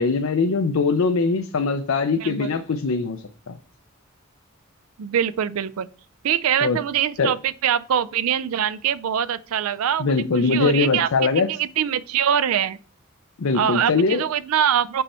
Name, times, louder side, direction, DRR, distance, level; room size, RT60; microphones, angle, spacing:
voice 1, 0.0-3.6 6.6-6.8 7.2-7.3 10.0-11.5 13.4-14.3, left 4 dB, 70° left, 0.5 m, -22 dB
voice 2, 2.2-2.5 5.0-5.9 6.2-11.1 11.3-12.8 13.5-15.0, right 9 dB, 75° right, 0.4 m, -23 dB
5.5 x 5.4 x 4.2 m
head